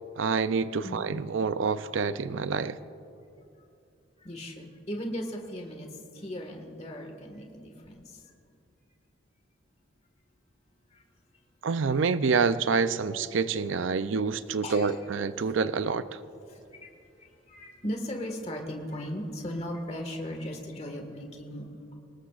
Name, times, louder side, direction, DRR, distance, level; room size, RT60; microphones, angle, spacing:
voice 1, 0.2-2.8 11.6-16.2, right 5 dB, 75° right, 13 dB, 0.5 m, -27 dB
voice 2, 4.2-5.9 6.1-8.2 10.9-11.0 14.6-15.0 16.5-16.9 17.2-21.6, equal, 30° left, 2 dB, 1.7 m, -37 dB
24.0 x 19.5 x 2.5 m, 2.6 s
head